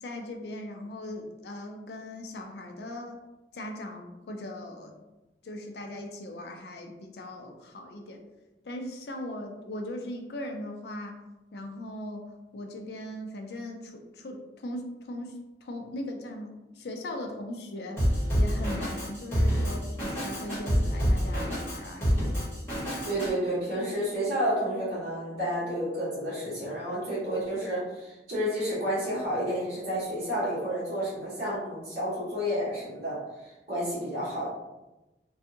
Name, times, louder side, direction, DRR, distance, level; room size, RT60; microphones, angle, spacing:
voice 1, 0.0-3.2 3.5-4.9 5.4-8.2 8.6-11.1 11.5-12.2 12.5-22.4, left 1 dB, 70° left, 3 dB, 0.4 m, -39 dB
Drum kit, 18.0-23.3, equal, 15° left, 1.3 m, -27 dB
voice 2, 23.0-34.5, equal, 55° right, -13 dB, 1.0 m, -30 dB
2.6 x 2.3 x 2.7 m, 1.0 s
head